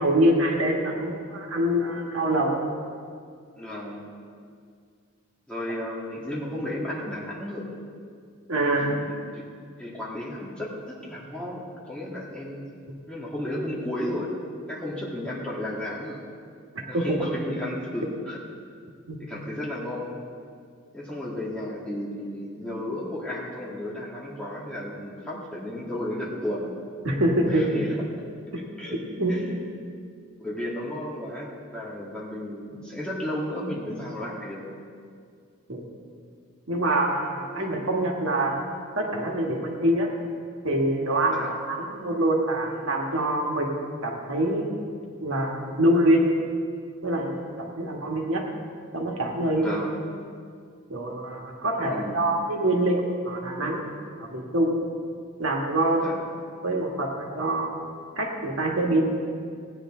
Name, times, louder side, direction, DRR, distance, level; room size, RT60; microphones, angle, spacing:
voice 1, 0.0-2.6 8.5-9.0 16.9-17.2 19.1-19.2 27.0-27.7 28.5-28.6 29.2-29.3 35.7-35.8 36.7-38.6 38.9-40.1 40.6-43.7 44.0-44.7 45.2-46.3 47.0-48.4 48.9-49.7 50.9-53.9 54.2-54.8 55.4-56.1 56.6-57.9 58.2-59.0, right 1 dB, 75° right, 0 dB, 1.6 m, -25 dB
voice 2, 3.6-4.1 5.5-7.7 8.8-9.4 9.8-12.6 13.1-14.3 14.7-16.2 16.8-18.4 19.2-20.2 20.9-26.7 27.5-28.1 28.7-29.0 29.2-30.0 30.4-34.6 37.6-37.7 41.3-41.5 49.5-49.9 51.8-52.2 56.0-56.2, left 1 dB, 5° left, -6 dB, 2.1 m, -33 dB
17.5 x 9.7 x 3.8 m, 2.2 s
head